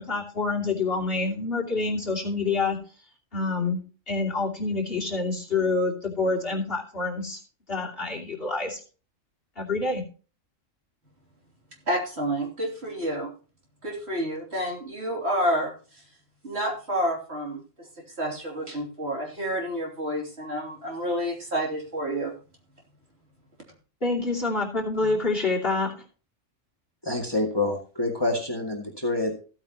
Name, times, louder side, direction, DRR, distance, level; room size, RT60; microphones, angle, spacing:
voice 1, 0.0-2.8 3.3-7.4 7.7-8.8 9.6-10.0 24.0-25.9, left 3 dB, 45° left, -2 dB, 3.1 m, -27 dB
voice 2, 11.9-13.3 13.8-15.7 16.4-17.6 18.2-22.3, equal, 50° right, 0 dB, 3.5 m, -29 dB
voice 3, 27.0-29.3, left 2 dB, 20° left, 1 dB, 2.1 m, -27 dB
15.5 x 8.7 x 3.0 m, 0.36 s
omnidirectional pair, 1.4 m